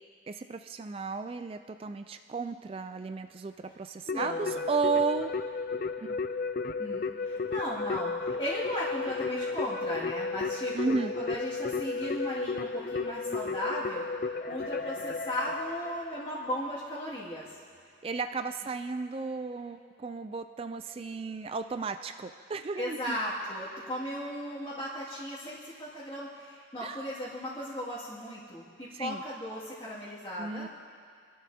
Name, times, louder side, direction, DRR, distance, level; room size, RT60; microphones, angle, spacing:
voice 1, 0.3-5.3 6.0-6.2 10.7-11.1 18.0-23.2 26.8-27.0 28.9-29.2 30.4-30.7, right 4 dB, 30° right, 8 dB, 0.3 m, -33 dB
Keyboard (musical), 4.1-16.5, left 4 dB, 45° left, 0.4 m, -34 dB
voice 2, 4.1-4.6 6.8-14.0 14.5-17.6 22.8-30.7, equal, 25° left, -11 dB, 2.2 m, -36 dB
25.0 x 12.5 x 2.8 m, 2.2 s
head